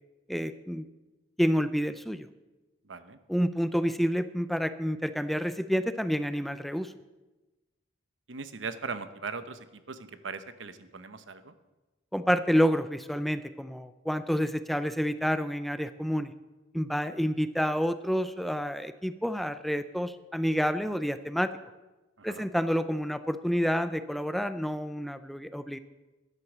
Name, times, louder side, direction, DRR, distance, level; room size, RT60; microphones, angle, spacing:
voice 1, 0.3-0.9 1.4-2.3 3.3-6.9 12.1-16.3 16.7-21.5 22.2-25.8, equal, ahead, 12 dB, 0.4 m, -29 dB
voice 2, 2.8-3.2 8.3-11.5 22.2-22.5, right 4 dB, 75° right, 11 dB, 1.0 m, -39 dB
13.0 x 9.7 x 7.3 m, 1.1 s
head